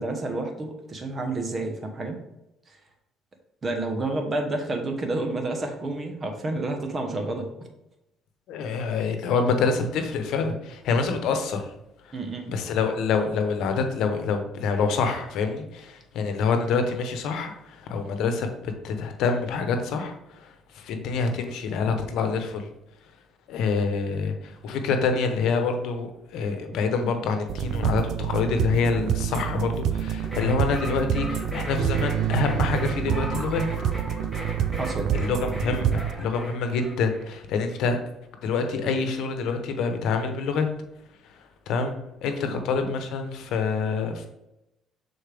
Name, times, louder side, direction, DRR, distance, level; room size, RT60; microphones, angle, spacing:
voice 1, 0.0-2.2 2.7-2.8 3.6-7.5 12.1-12.5 34.8-35.1 42.4-42.6, right 2 dB, 30° right, 4 dB, 1.2 m, -29 dB
voice 2, 8.5-11.6 12.5-22.7 23.5-33.6 35.1-38.0 38.4-40.7 41.7-44.3, left 5 dB, 70° left, 6 dB, 1.0 m, -26 dB
sound 1, 27.5-36.1, right 9 dB, 60° right, 0.4 m, -27 dB
sound 2, 30.2-37.3, equal, ahead, 2.2 m, -38 dB
6.5 x 4.2 x 3.5 m, 0.89 s
cardioid pair, 95°, 0 cm